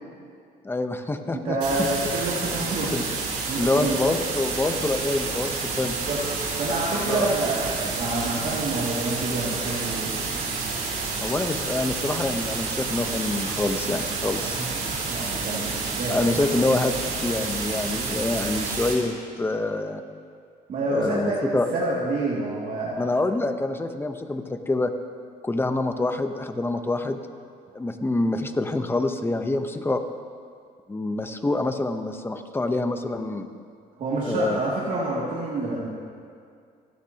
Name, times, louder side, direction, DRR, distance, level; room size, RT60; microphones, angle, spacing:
voice 1, 0.6-1.9 2.9-3.0 3.6-6.0 7.1-7.3 11.2-14.7 16.1-20.0 20.9-21.7 23.0-24.9 25.4-27.2 27.7-30.0 30.9-33.5 34.2-34.6, left 2 dB, 15° left, 7 dB, 0.9 m, -26 dB
voice 2, 1.4-2.9 3.5-4.1 6.1-6.2 6.6-10.3 14.4-16.3 20.7-23.0 34.0-35.9, right 2 dB, 50° right, -6 dB, 2.5 m, -28 dB
sound 1, 1.6-18.9, right 4 dB, 70° right, 4.2 m, -29 dB
28.5 x 10.0 x 3.0 m, 2.2 s
cardioid pair, 110°, 17 cm